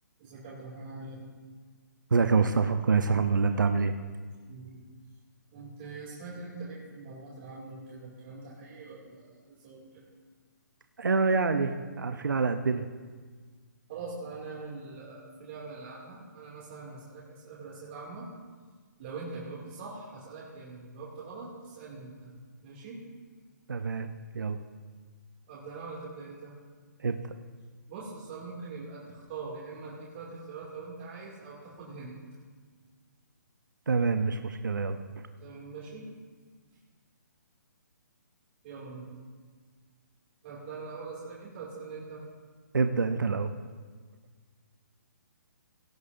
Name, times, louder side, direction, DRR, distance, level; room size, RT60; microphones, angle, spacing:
voice 1, 0.2-1.2 4.4-4.8 5.5-10.0 13.9-18.3 19.0-22.3 22.6-23.0 25.5-26.5 27.9-32.2 35.4-36.1 38.6-39.1 40.4-42.2, right 3 dB, 40° right, -5 dB, 2.4 m, -43 dB
voice 2, 2.1-3.9 11.0-12.9 23.7-24.1 24.3-24.6 27.0-27.3 33.9-35.0 42.7-43.5, right 4 dB, 85° right, 8 dB, 0.7 m, -26 dB
17.5 x 9.7 x 2.6 m, 1.5 s
hypercardioid pair, 145°, 10 cm